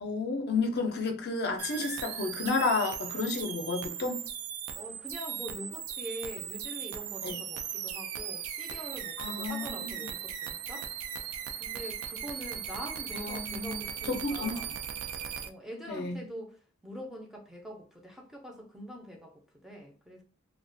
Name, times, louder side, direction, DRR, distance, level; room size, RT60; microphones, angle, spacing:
voice 1, 0.0-4.2 7.2-7.4 9.2-10.1 13.1-13.8 14.4-14.6 15.9-16.2, left 3 dB, 55° left, 0.5 m, -31 dB
sound 1, 1.6-15.5, right 8 dB, 85° right, 0.3 m, -38 dB
voice 2, 4.8-10.9 11.6-14.8 15.4-20.2, equal, ahead, 0.5 m, -44 dB
2.3 x 2.1 x 2.5 m
head